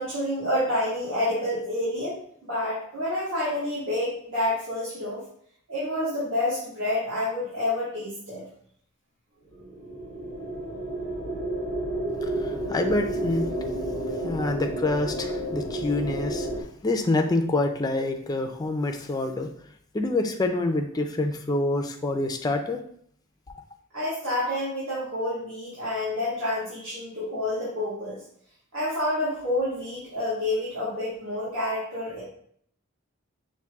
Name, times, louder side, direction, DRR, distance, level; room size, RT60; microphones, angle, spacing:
voice 1, 0.0-5.2 5.7-8.4 23.9-28.2 28.7-32.2, left 1 dB, 65° right, -10 dB, 1.8 m, -28 dB
sound 1, 9.5-16.6, right 1 dB, 85° right, 1.5 m, -31 dB
voice 2, 12.2-13.5 14.2-19.5 19.9-22.8, left 2 dB, 20° left, 4 dB, 0.4 m, -27 dB
5.9 x 2.5 x 3.5 m, 0.64 s
head